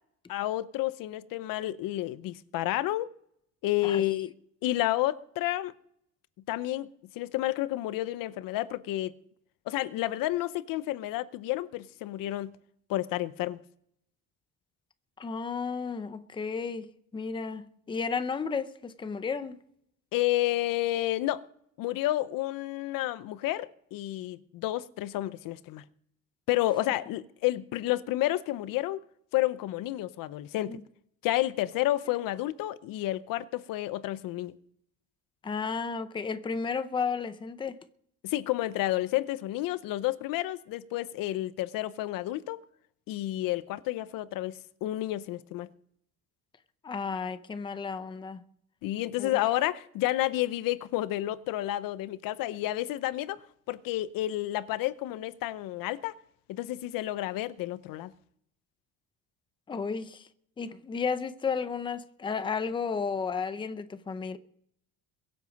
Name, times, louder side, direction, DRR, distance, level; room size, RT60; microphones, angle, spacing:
voice 1, 0.3-3.1 3.6-4.3 4.6-5.7 6.5-6.9 7.1-9.1 9.7-12.6 12.9-13.6 20.1-21.4 21.8-25.8 26.5-29.0 29.3-30.8 31.2-34.6 38.2-42.6 43.1-45.7 48.8-56.2 56.5-58.1, left 15 dB, 75° left, 0.8 m, -30 dB
voice 2, 15.2-19.6 30.7-30.8 35.4-37.8 46.8-48.4 49.2-49.4 59.7-60.3 60.6-64.4, left 5 dB, 15° left, 0.6 m, -33 dB
22.5 x 8.0 x 5.2 m
cardioid pair, 170°, 34 cm